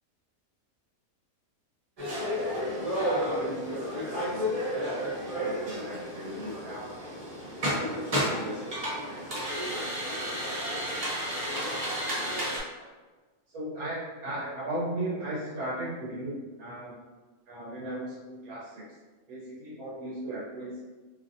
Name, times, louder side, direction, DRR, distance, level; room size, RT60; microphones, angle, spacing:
sound 1, 2.0-12.6, equal, 45° right, 0.5 m, -32 dB
voice 1, 2.2-2.9 3.2-7.0 7.6-11.7 12.0-12.5 12.8-12.9 13.5-17.0 17.5-19.0 19.3-20.8, right 1 dB, 80° right, -7 dB, 1.2 m, -38 dB
2.8 x 2.6 x 2.5 m, 1.3 s
omnidirectional pair, 1.5 m